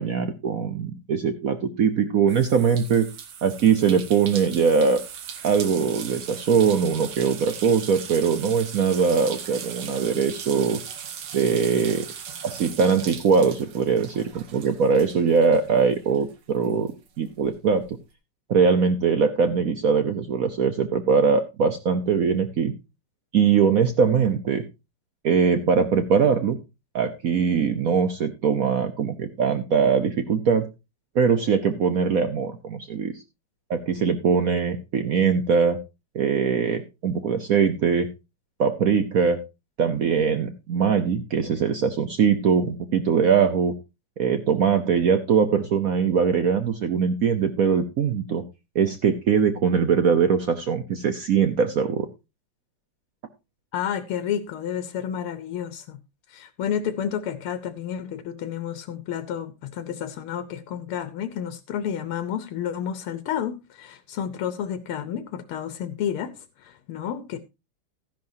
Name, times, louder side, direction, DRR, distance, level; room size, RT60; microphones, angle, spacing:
voice 1, 0.0-3.1 3.4-5.0 5.4-10.8 11.3-12.1 12.4-18.0 18.5-22.7 23.3-24.7 25.2-26.6 26.9-30.7 31.1-33.1 33.7-35.8 36.1-38.1 38.6-39.4 39.8-43.7 44.2-48.4 48.7-52.1, right 6 dB, 65° right, 0.8 m, -22 dB
sound 1, 2.3-16.3 16.6-17.9, right 7 dB, 85° right, 2.2 m, -39 dB
voice 2, 53.7-56.0 56.3-66.3 66.6-67.4, left 9 dB, 80° left, 1.7 m, -30 dB
13.5 x 10.5 x 2.7 m
omnidirectional pair, 2.4 m